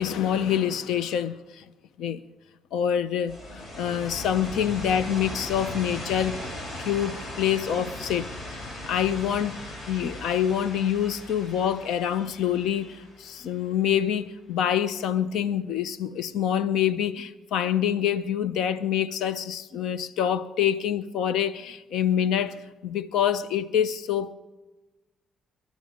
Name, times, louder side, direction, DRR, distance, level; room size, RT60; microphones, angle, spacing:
voice 1, 0.0-1.6 2.0-2.2 2.7-6.5 6.8-9.6 9.9-24.3, left 9 dB, 85° left, 0.6 m, -26 dB
sound 1, 3.3-14.0, left 1 dB, 55° left, 4.3 m, -38 dB
20.0 x 12.5 x 5.2 m
cardioid pair, 90°, 0 cm